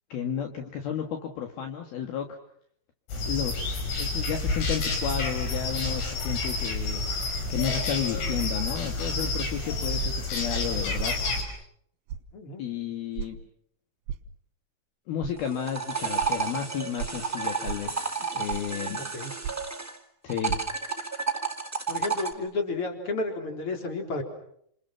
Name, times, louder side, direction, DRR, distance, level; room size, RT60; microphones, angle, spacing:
voice 1, 0.1-2.3 3.3-7.0 7.5-11.1 12.6-13.4 15.1-19.0 20.2-20.6, left 8 dB, 65° left, 4 dB, 3.4 m, -32 dB
sound 1, 3.1-11.4, left 3 dB, 90° left, 7.2 m, -29 dB
sound 2, 10.0-10.3 11.0-11.2 12.1-12.3 13.2-13.3 14.1-14.3 15.2-15.3 16.2-16.3 17.0-17.2 17.6-17.9 18.5-18.8 19.4-19.7 20.5-20.6, right 9 dB, 70° right, 2.8 m, -34 dB
voice 2, 12.3-12.6 19.1-19.3 21.9-24.2, left 3 dB, 30° left, 4 dB, 4.4 m, -31 dB
sound 3, 15.4-20.0 20.3-22.3, right 5 dB, 10° right, 0.7 m, -31 dB
30.0 x 27.5 x 6.0 m, 0.68 s
omnidirectional pair, 5.1 m